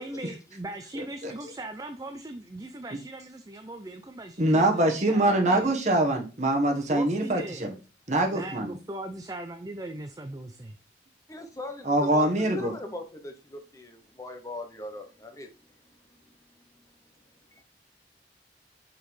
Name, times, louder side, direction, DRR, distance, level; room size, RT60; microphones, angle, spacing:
voice 1, 0.0-5.7 6.9-7.7 8.3-10.8, right 1 dB, 20° right, 7 dB, 0.4 m, -39 dB
voice 2, 0.9-1.3 2.9-3.0 4.4-7.7 8.1-8.7 11.8-12.7, right 1 dB, 40° right, 2 dB, 1.3 m, -24 dB
voice 3, 11.3-15.5, left 1 dB, 20° left, 5 dB, 0.7 m, -39 dB
5.7 x 5.3 x 3.2 m, 0.33 s
head